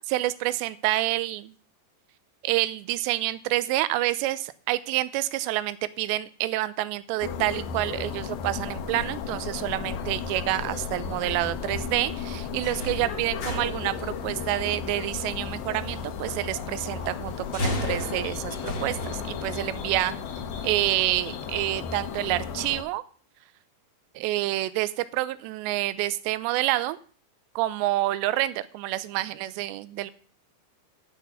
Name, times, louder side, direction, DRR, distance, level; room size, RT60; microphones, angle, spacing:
voice 1, 0.0-1.5 2.4-20.2 20.6-23.0 24.2-27.0 27.6-30.1, right 16 dB, 80° right, 15 dB, 2.8 m, -28 dB
sound 1, 7.2-22.8, left 6 dB, 70° left, 2.5 m, -35 dB
sound 2, 10.7-21.2, left 2 dB, 40° left, 1.6 m, -37 dB
11.0 x 6.0 x 8.1 m, 0.43 s
omnidirectional pair, 5.2 m